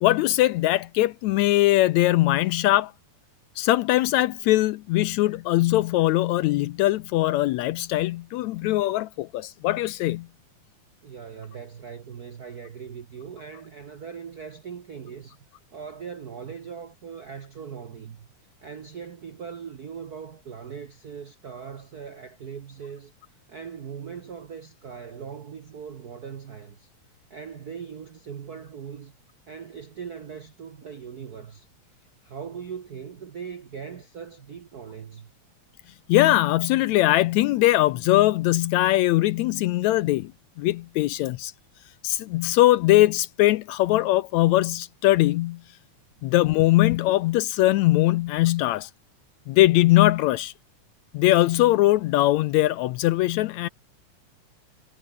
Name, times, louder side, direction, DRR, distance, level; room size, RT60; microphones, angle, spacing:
voice 1, 0.0-2.9 3.6-10.3 36.1-40.3 40.6-41.5 42.0-45.6 46.2-48.9 49.5-50.5 51.1-53.7, left 16 dB, 80° left, 1.8 m, -21 dB
voice 2, 11.0-15.4 15.7-18.3 18.6-23.1 23.5-26.9 27.3-29.1 29.5-31.7 32.0-35.3, right 7 dB, 80° right, 0.8 m, -40 dB
omnidirectional pair, 3.5 m